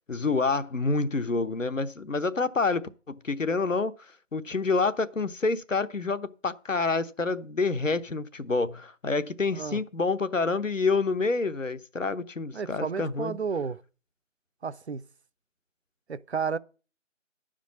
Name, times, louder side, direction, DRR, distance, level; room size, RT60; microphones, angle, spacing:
voice 1, 0.1-3.9 4.3-13.4, left 3 dB, 90° left, 1.0 m, -28 dB
voice 2, 12.5-13.8 14.6-15.0 16.1-16.6, right 5 dB, 60° right, 0.6 m, -32 dB
10.0 x 5.1 x 8.3 m
figure-of-eight pair, 160°, 37 cm